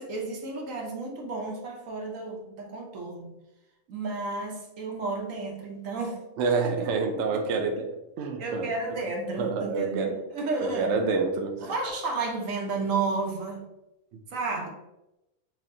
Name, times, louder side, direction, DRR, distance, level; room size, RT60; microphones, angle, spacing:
voice 1, 0.0-3.3 3.9-6.2 6.6-7.6 8.4-11.0 11.6-13.7 14.3-14.7, right 3 dB, 90° right, 0 dB, 1.2 m, -32 dB
voice 2, 6.4-8.7 9.4-10.1 10.6-11.7, right 4 dB, 70° right, 3 dB, 0.8 m, -28 dB
6.2 x 2.1 x 2.6 m, 0.91 s
omnidirectional pair, 1.3 m